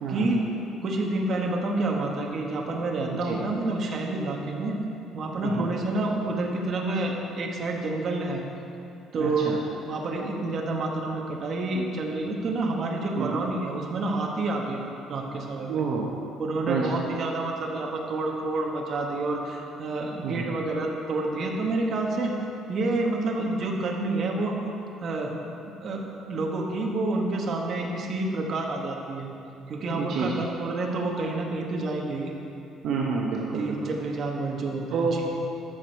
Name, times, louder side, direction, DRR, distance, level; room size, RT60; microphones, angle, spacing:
voice 1, 0.8-4.8 5.1-8.4 9.1-9.5 9.9-14.8 15.1-15.8 16.4-22.3 22.7-24.5 25.0-25.3 25.8-26.0 26.3-29.3 29.7-32.3 33.5-35.2, right 2 dB, 40° right, 0 dB, 1.2 m, -28 dB
voice 2, 9.2-9.6 13.1-13.4 15.7-16.1 16.7-16.9 20.2-20.5 30.0-30.3 32.8-33.9 34.9-35.2, right 5 dB, 60° right, -2 dB, 0.9 m, -28 dB
14.0 x 6.1 x 4.6 m, 2.8 s
cardioid pair, 160°, 0 cm